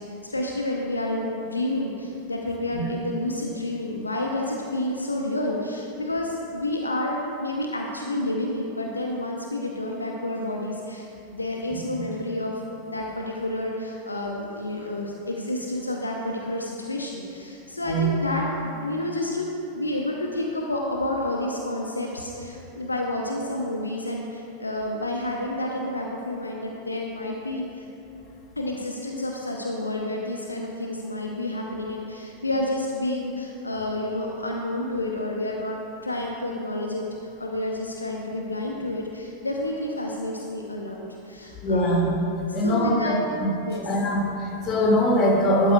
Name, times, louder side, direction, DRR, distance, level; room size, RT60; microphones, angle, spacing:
voice 1, 0.0-11.1 11.3-27.8 28.6-42.0 42.6-43.2 43.7-43.8, left 1 dB, 80° left, 0 dB, 0.8 m, -30 dB
voice 2, 41.6-42.1 42.5-43.1 43.9-45.7, equal, 30° left, -2 dB, 2.2 m, -22 dB
12.5 x 12.0 x 2.4 m, 2.8 s
figure-of-eight pair, 90°, 0 cm